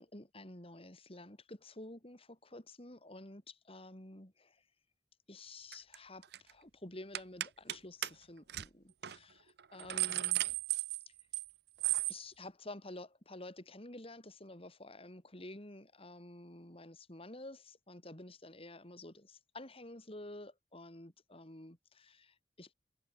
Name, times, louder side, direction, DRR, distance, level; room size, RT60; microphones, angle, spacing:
voice 1, 0.0-4.6 5.3-10.4 12.1-22.7, left 2 dB, 35° left, 4.2 m, -50 dB
sound 1, 5.7-6.0 6.2-6.5 7.1-7.8 8.0-8.1 8.5-8.7 9.0-9.2 9.6-11.5 11.8-12.2, right 16 dB, 65° right, 0.7 m, -34 dB
head